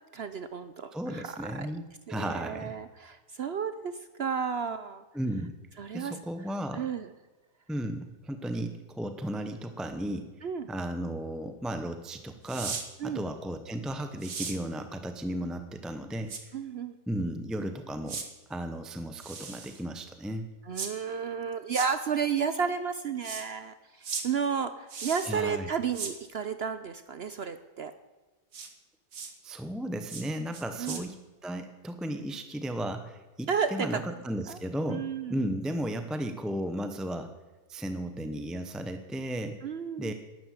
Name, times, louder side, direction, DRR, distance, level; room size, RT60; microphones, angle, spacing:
voice 1, 0.1-3.9 4.2-5.0 5.8-6.1 6.7-7.1 10.4-10.7 13.0-13.2 16.5-17.0 20.7-27.9 30.8-31.1 33.5-34.0 34.5-34.6 34.9-35.5 39.6-40.1, right 6 dB, 80° right, 11 dB, 0.5 m, -32 dB
voice 2, 0.9-2.7 5.1-5.6 5.9-6.9 7.7-10.3 10.7-16.6 17.1-18.2 18.5-20.5 25.2-25.7 29.4-31.2 31.4-37.3 37.7-39.7 40.0-40.1, right 1 dB, ahead, 8 dB, 0.4 m, -35 dB
sound 1, 12.5-12.9 14.2-14.6 16.3-16.4 18.1-18.3 19.2-19.8 20.8-20.9 21.7-21.9 23.2-23.5 24.0-24.3 24.9-25.4 25.9-26.1 28.5-28.7 29.1-29.3 30.1-30.3 30.5-31.0, right 5 dB, 50° right, 1.9 m, -37 dB
12.0 x 11.0 x 9.4 m, 1.2 s
omnidirectional pair, 2.0 m